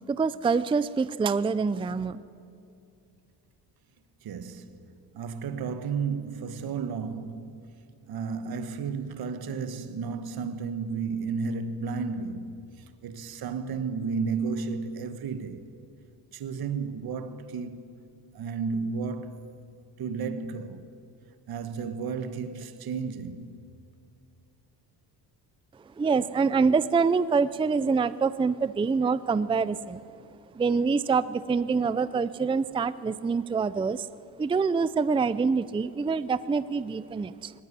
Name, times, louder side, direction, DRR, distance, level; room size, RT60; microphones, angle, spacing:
voice 1, 0.1-2.2 26.0-30.0 30.5-34.1 34.4-37.5, right 5 dB, 15° right, 0.4 m, -25 dB
voice 2, 4.2-7.7 8.1-15.7 16.3-18.0 18.3-19.5 20.0-20.9 21.5-23.7, right 5 dB, 60° right, 1.3 m, -33 dB
19.0 x 18.0 x 9.8 m
cardioid pair, 115°, 41 cm